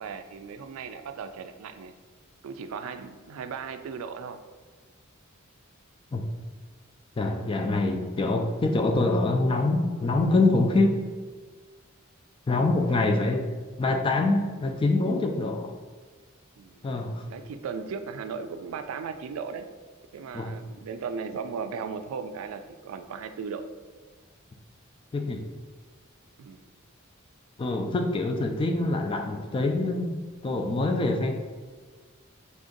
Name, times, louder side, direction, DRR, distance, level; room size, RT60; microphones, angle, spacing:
voice 1, 0.0-1.9 2.4-4.4 7.3-7.5 12.9-13.1 16.6-16.9 17.3-19.7 20.1-23.7 26.4-26.7, right 5 dB, 85° right, 9 dB, 0.3 m, -37 dB
voice 2, 7.2-11.0 12.5-13.5 13.8-15.7 16.8-17.3 20.3-20.6 25.1-25.4 27.6-30.2 30.4-31.4, left 2 dB, 25° left, 4 dB, 0.3 m, -25 dB
3.5 x 2.6 x 3.8 m, 1.4 s
head